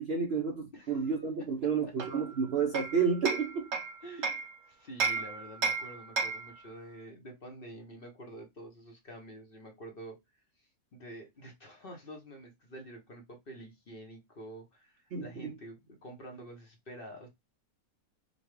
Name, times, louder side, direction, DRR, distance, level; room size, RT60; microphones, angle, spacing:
voice 1, 0.0-3.7 15.1-15.2, right 6 dB, 55° right, 0.7 m, -30 dB
voice 2, 0.7-1.2 4.0-17.3, right 1 dB, 45° left, 0.9 m, -48 dB
Hammer, 2.0-4.5 5.0-6.6, right 4 dB, 90° right, 1.4 m, -33 dB
5.2 x 2.3 x 3.1 m
omnidirectional pair, 1.6 m